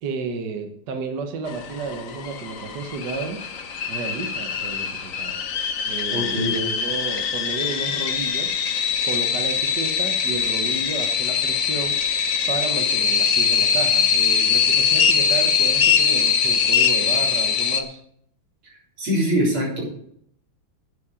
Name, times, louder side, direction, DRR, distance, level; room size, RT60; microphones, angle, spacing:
voice 1, 0.0-3.4 3.9-5.4 5.8-8.6 9.1-11.9 12.5-18.0, right 4 dB, 60° right, 5 dB, 1.6 m, -32 dB
sound 1, 1.5-17.8, left 6 dB, 55° left, 1.0 m, -22 dB
voice 2, 6.1-6.6 19.0-19.8, equal, 85° right, -3 dB, 4.6 m, -23 dB
11.5 x 8.7 x 5.0 m, 0.68 s
omnidirectional pair, 2.3 m